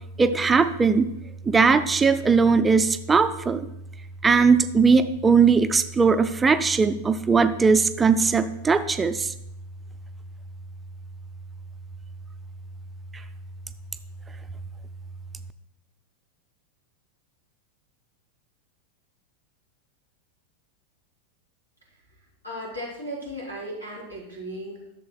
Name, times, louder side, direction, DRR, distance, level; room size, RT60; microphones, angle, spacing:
voice 1, 0.2-1.1 1.5-3.7 4.2-9.3, right 5 dB, 15° right, 10 dB, 0.4 m, -19 dB
voice 2, 22.4-24.9, equal, 85° left, -4 dB, 2.8 m, -36 dB
12.5 x 6.9 x 2.2 m, 0.79 s
figure-of-eight pair, 90°, 0 cm